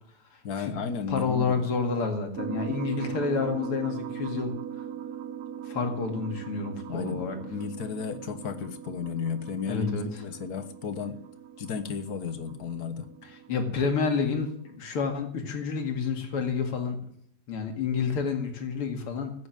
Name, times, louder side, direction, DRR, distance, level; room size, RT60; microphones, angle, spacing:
voice 1, 0.4-1.7 6.9-11.1 11.6-13.1, left 6 dB, 50° left, 11 dB, 1.5 m, -33 dB
voice 2, 1.1-4.5 5.6-7.4 9.7-10.2 13.5-17.0 17.5-19.3, left 5 dB, 80° left, 4 dB, 3.2 m, -29 dB
sound 1, 2.3-14.8, right 9 dB, 85° right, 2.2 m, -40 dB
15.5 x 9.3 x 9.1 m, 0.66 s
omnidirectional pair, 2.4 m